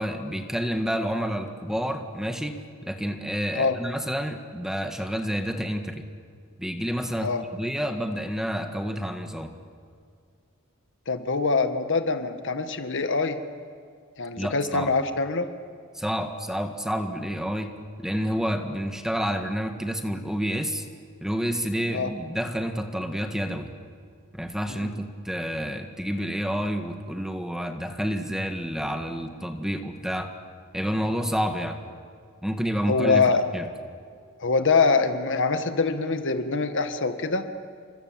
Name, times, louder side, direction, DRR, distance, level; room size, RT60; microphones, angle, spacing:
voice 1, 0.0-6.0 6.6-9.5 14.4-14.9 15.9-17.7 18.0-20.8 21.2-23.7 24.3-30.3 30.7-31.8 32.4-33.2 33.5-33.7, equal, ahead, 6 dB, 1.7 m, -29 dB
voice 2, 11.1-13.4 14.2-15.5 21.9-22.1 24.7-24.9 32.9-33.4 34.4-37.5, left 4 dB, 60° left, 8 dB, 1.7 m, -24 dB
30.0 x 25.0 x 7.6 m, 2.2 s
head